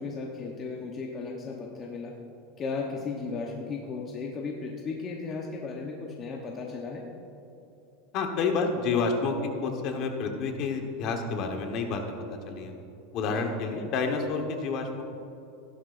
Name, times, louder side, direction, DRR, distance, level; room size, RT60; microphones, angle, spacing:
voice 1, 0.0-2.1 2.6-7.0 13.3-13.5, left 4 dB, 25° left, -1 dB, 0.9 m, -35 dB
voice 2, 8.1-12.0 12.3-12.7 13.1-15.0, left 4 dB, 40° left, 4 dB, 1.2 m, -29 dB
15.5 x 11.5 x 2.6 m, 2.8 s
supercardioid pair, 160°, 0 cm